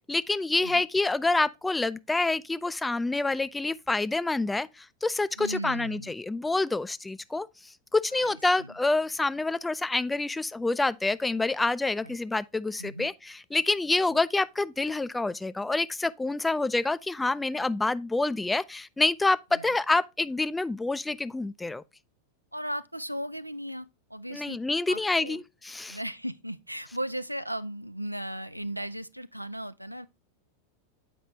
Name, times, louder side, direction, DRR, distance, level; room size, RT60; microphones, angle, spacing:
voice 1, 0.1-7.5 7.9-21.8 24.3-26.0, left 2 dB, 10° left, 0.3 m, -27 dB
voice 2, 5.4-6.1 8.1-8.7 12.0-12.2 12.8-13.1 14.1-14.2 19.5-19.8 22.5-24.6 24.9-25.4 25.9-30.1, right 1 dB, 90° right, 0.3 m, -36 dB
7.8 x 5.0 x 3.1 m
figure-of-eight pair, 90°, 0 cm